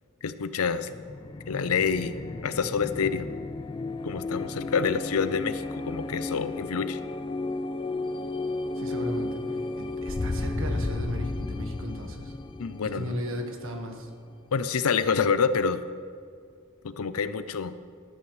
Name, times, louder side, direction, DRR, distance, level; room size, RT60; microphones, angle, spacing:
voice 1, 0.2-0.9 1.5-2.1 2.4-3.3 4.0-7.0 12.6-13.2 14.5-15.8 16.8-17.7, left 5 dB, 85° left, 13 dB, 0.6 m, -27 dB
sound 1, 0.8-14.3, left 2 dB, 20° left, 0.3 m, -33 dB
voice 2, 8.7-12.3 13.0-14.1, equal, 65° right, 3 dB, 1.5 m, -36 dB
13.0 x 12.5 x 3.2 m, 2.1 s
head